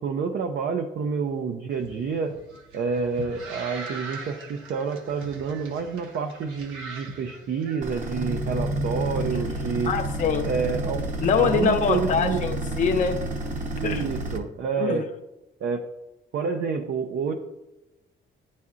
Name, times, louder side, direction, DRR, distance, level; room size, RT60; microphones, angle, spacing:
voice 1, 0.0-2.3 2.7-9.9 10.4-11.0 11.4-12.4 13.6-15.1 15.6-15.8 16.3-17.3, right 5 dB, 60° right, 5 dB, 0.5 m, -28 dB
sound 1, 1.7-8.1, right 3 dB, 90° right, 0.9 m, -41 dB
sound 2, 7.8-14.4, right 1 dB, 40° right, 0.9 m, -30 dB
voice 2, 9.9-10.5 11.2-13.2 13.8-14.0 14.8-15.0, left 6 dB, 40° left, 4 dB, 0.5 m, -24 dB
9.4 x 4.2 x 2.4 m, 0.98 s
cardioid pair, 90°, 20 cm